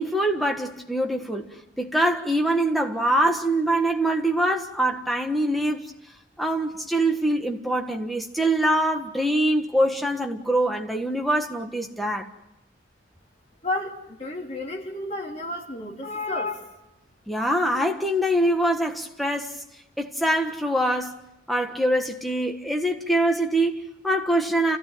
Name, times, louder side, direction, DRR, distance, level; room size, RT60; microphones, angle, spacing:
voice 1, 0.0-1.5 1.8-5.9 6.4-12.3 17.3-19.6 20.0-21.2 21.5-24.8, right 1 dB, ahead, 1.5 m, -24 dB
voice 2, 13.6-16.8, left 2 dB, 35° left, 3.1 m, -31 dB
29.0 x 15.5 x 9.2 m
head